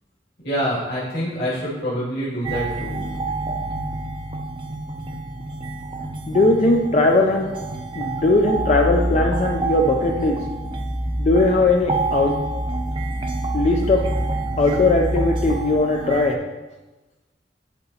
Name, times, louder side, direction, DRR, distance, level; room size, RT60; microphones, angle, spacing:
voice 1, 0.4-3.1, equal, 65° left, -8 dB, 2.3 m, -26 dB
sound 1, 2.4-16.4, right 3 dB, 30° right, 0.5 m, -30 dB
voice 2, 6.3-7.6 7.9-10.5 11.2-12.5 13.5-14.1 14.6-16.4, left 2 dB, 40° left, 2 dB, 0.4 m, -19 dB
sound 2, 8.5-15.6, equal, 70° right, 1.4 m, -27 dB
10.0 x 4.0 x 2.8 m, 1.1 s
head